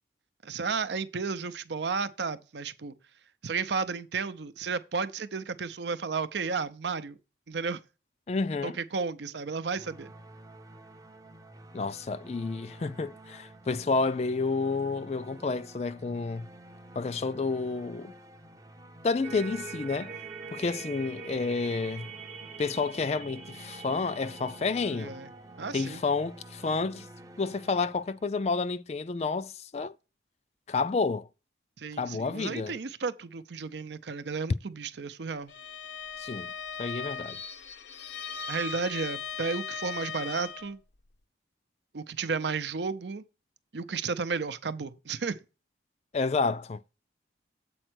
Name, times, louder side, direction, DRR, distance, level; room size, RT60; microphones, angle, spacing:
voice 1, 0.4-3.0 3.4-7.2 7.5-7.8 8.6-10.1 24.9-25.3 25.6-26.0 31.8-35.5 38.5-40.8 41.9-43.2 43.7-45.4, right 5 dB, 75° right, 0.6 m, -33 dB
voice 2, 8.3-8.8 11.7-16.5 17.0-18.1 19.0-20.1 20.5-22.1 22.6-25.1 25.7-27.1 27.4-30.0 30.7-31.3 32.0-32.7 36.2-36.5 36.8-37.4 46.1-46.8, left 4 dB, 35° left, 0.3 m, -30 dB
sound 1, 9.8-28.7, right 1 dB, 20° right, 0.5 m, -50 dB
sound 2, 19.2-26.5, right 5 dB, 45° right, 1.0 m, -44 dB
Bowed string instrument, 35.5-40.8, left 5 dB, 80° left, 0.7 m, -38 dB
7.8 x 4.3 x 6.1 m
head